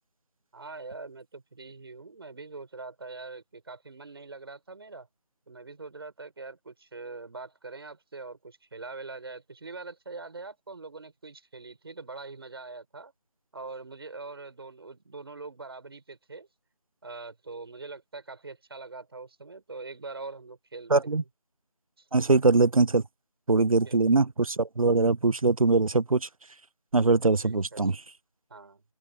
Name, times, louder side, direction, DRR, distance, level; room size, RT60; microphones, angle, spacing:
voice 1, 0.5-5.1 5.5-13.1 13.5-16.5 17.0-21.1 22.0-22.1 23.8-24.2 27.4-27.8 28.5-28.8, right 3 dB, 45° right, 6.3 m, -43 dB
voice 2, 20.9-21.2 22.1-23.0 23.5-26.3 26.9-28.0, right 3 dB, 70° right, 0.8 m, -22 dB
figure-of-eight pair, 165°, 18 cm